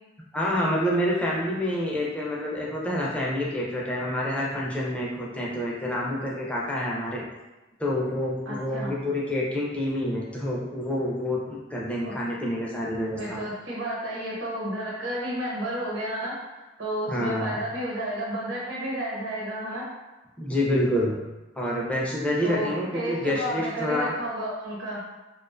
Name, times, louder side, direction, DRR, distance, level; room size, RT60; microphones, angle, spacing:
voice 1, 0.3-7.2 7.8-13.4 17.1-17.5 20.4-21.2 21.6-24.1, left 1 dB, 5° left, -5 dB, 0.4 m, -27 dB
voice 2, 8.5-8.9 12.0-12.1 13.2-16.4 16.8-19.8 22.4-25.0, right 1 dB, 85° right, -5 dB, 0.9 m, -31 dB
2.4 x 2.2 x 2.4 m, 1.1 s
head